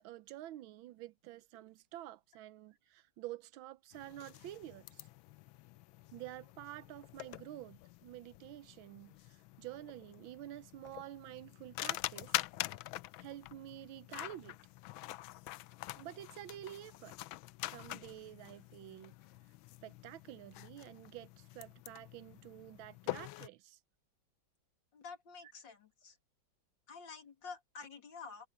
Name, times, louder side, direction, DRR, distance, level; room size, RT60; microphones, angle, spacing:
voice 1, 0.0-5.1 6.1-12.3 13.2-14.6 16.0-17.2 17.7-19.1 19.8-23.8, right 14 dB, 90° right, 1.5 m, -49 dB
sound 1, 3.9-23.5, left 17 dB, 90° left, 1.4 m, -45 dB
voice 2, 24.9-26.2 26.9-28.5, left 5 dB, 70° left, 3.0 m, -49 dB
omnidirectional pair, 2.1 m